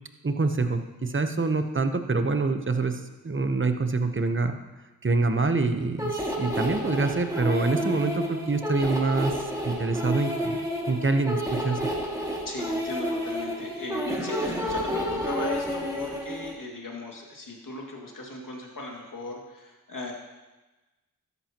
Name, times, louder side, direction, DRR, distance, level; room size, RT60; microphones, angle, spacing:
voice 1, 0.2-4.6 5.0-11.8, right 3 dB, 35° right, 7 dB, 1.0 m, -26 dB
sound 1, 6.0-16.5, equal, 10° right, 2.3 m, -30 dB
voice 2, 12.4-20.1, left 2 dB, 60° left, -1 dB, 2.4 m, -37 dB
13.0 x 9.8 x 3.0 m, 1.1 s
cardioid pair, 40°, 36 cm